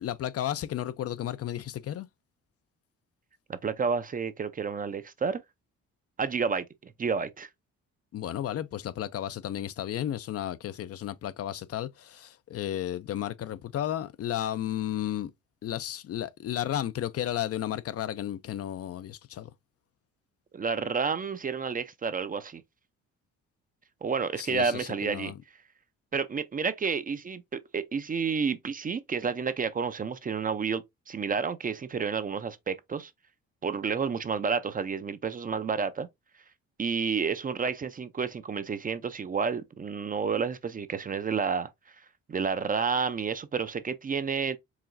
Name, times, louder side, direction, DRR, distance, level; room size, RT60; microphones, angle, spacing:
voice 1, 0.0-2.1 8.1-15.3 15.6-19.5 24.4-25.4, left 11 dB, 55° left, 0.5 m, -33 dB
voice 2, 3.5-5.4 6.2-7.5 20.5-22.6 24.0-25.3 26.1-33.1 33.6-36.1 36.8-41.7 42.3-44.6, right 5 dB, 30° right, 0.5 m, -30 dB
4.8 x 3.1 x 2.5 m
cardioid pair, 90°, 30 cm